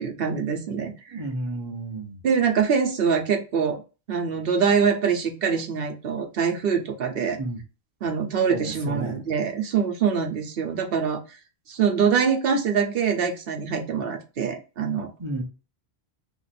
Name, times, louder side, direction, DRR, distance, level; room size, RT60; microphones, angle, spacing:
voice 1, 0.0-0.9 2.2-3.8 4.1-7.4 8.0-11.2 11.7-15.1, right 6 dB, 60° right, 0.9 m, -24 dB
voice 2, 1.1-2.2 7.4-7.6 8.5-9.2 15.2-15.4, right 2 dB, 30° right, 0.7 m, -31 dB
2.9 x 2.5 x 4.0 m
omnidirectional pair, 1.1 m